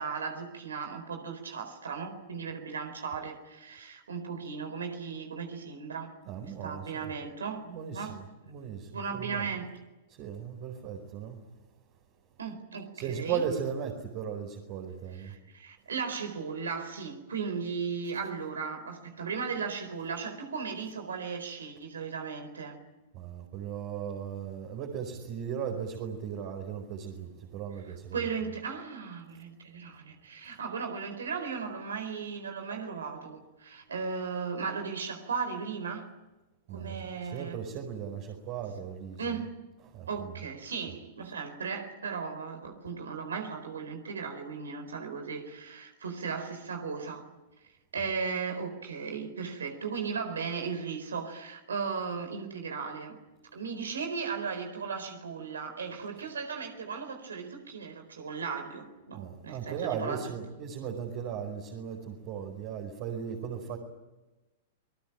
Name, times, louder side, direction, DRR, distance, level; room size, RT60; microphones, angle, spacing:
voice 1, 0.0-6.1 6.4-7.7 7.9-8.2 8.9-9.7 12.4-13.4 15.1-22.8 28.1-36.1 36.7-37.6 39.2-39.5 40.1-47.2 47.9-53.2 53.5-60.3, right 5 dB, 80° right, 5 dB, 4.4 m, -36 dB
voice 2, 6.3-7.1 7.6-9.5 10.1-11.4 12.9-15.3 23.1-28.3 36.7-39.4 39.8-40.4 59.1-63.8, right 7 dB, 50° right, 1 dB, 4.9 m, -37 dB
28.5 x 20.0 x 9.0 m, 1.1 s
hypercardioid pair, 105°, 0 cm